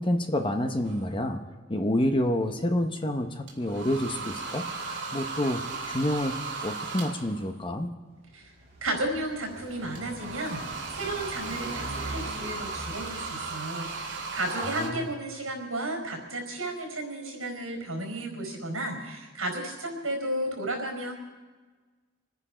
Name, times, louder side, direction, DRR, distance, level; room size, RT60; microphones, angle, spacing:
voice 1, 0.0-1.4 1.7-4.7 5.1-6.4 6.6-7.9 14.6-15.1, left 1 dB, 25° left, 6 dB, 0.9 m, -28 dB
sound 1, 0.8-1.1 3.5-7.5 9.9-14.9, right 4 dB, 55° right, 2.9 m, -36 dB
Car passing by, 8.2-13.7, right 1 dB, 30° right, 4.2 m, -41 dB
voice 2, 8.8-10.6 10.9-21.1, right 1 dB, 75° right, 2 dB, 4.7 m, -33 dB
27.0 x 10.0 x 5.0 m, 1.4 s
head